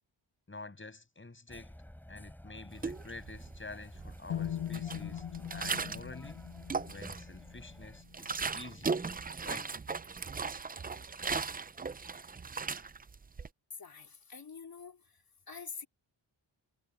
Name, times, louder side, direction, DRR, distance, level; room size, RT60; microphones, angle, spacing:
voice 1, 0.5-1.8 2.1-6.4 6.9-9.0 9.4-9.7, left 3 dB, 25° left, 7.4 m, -48 dB
sound 1, 1.5-8.0, equal, 5° left, 4.1 m, -51 dB
sound 2, 2.8-3.6 3.9-6.2 6.5-7.4 7.8-13.5, right 4 dB, 20° right, 0.4 m, -37 dB
sound 3, 4.3-8.2, left 10 dB, 85° left, 1.7 m, -41 dB
voice 2, 13.7-15.9, left 5 dB, 50° left, 3.7 m, -47 dB
wide cardioid pair, 150°, 45 cm